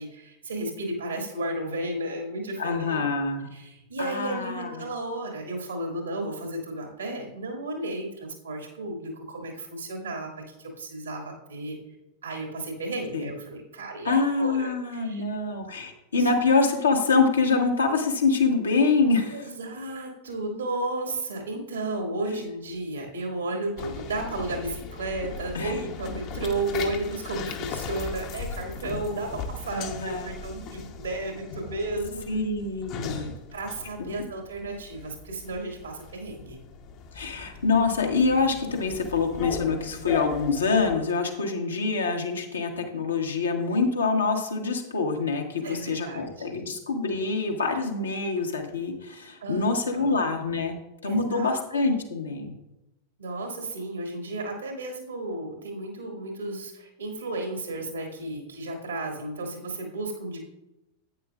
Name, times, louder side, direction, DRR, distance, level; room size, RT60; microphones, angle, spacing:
voice 1, 0.0-3.0 3.5-11.8 12.2-15.2 19.3-32.2 33.1-36.6 45.6-46.6 49.4-50.2 51.0-51.6 53.2-60.4, right 2 dB, 75° right, 2 dB, 2.0 m, -33 dB
voice 2, 2.6-3.5 4.0-4.9 13.1-13.3 14.0-19.5 25.5-25.7 29.7-30.3 32.3-33.3 34.0-34.1 37.1-50.8 51.0-52.5, left 4 dB, 75° left, 2 dB, 1.2 m, -25 dB
sound 1, 23.8-41.0, left 5 dB, 40° left, 0.9 m, -38 dB
10.5 x 8.8 x 2.4 m, 0.92 s
figure-of-eight pair, 90°, 0 cm